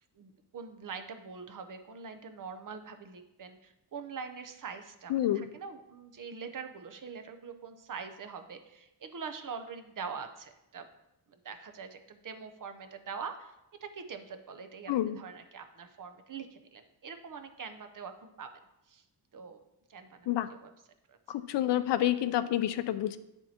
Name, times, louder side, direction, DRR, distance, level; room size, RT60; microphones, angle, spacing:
voice 1, 0.2-10.9 11.3-13.5 13.8-18.5 18.9-19.0 19.3-19.6 19.9-20.7 21.1-21.2, right 5 dB, 50° right, 8 dB, 0.7 m, -44 dB
voice 2, 5.1-5.5 14.9-15.2 20.3-20.5 21.3-23.2, left 12 dB, 80° left, 13 dB, 0.5 m, -28 dB
8.8 x 7.1 x 2.8 m, 0.88 s
wide cardioid pair, 140°, 42 cm